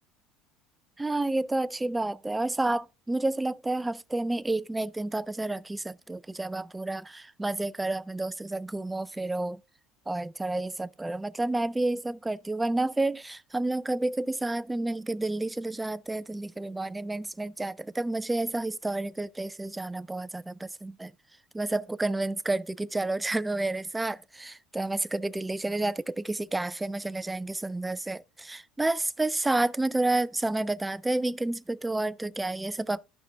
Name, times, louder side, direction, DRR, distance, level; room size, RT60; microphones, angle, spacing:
voice 1, 1.0-9.6 10.1-21.1 21.5-33.0, right 2 dB, 10° right, 0.4 m, -30 dB
14.0 x 5.8 x 3.4 m
cardioid pair, 120°, 0 cm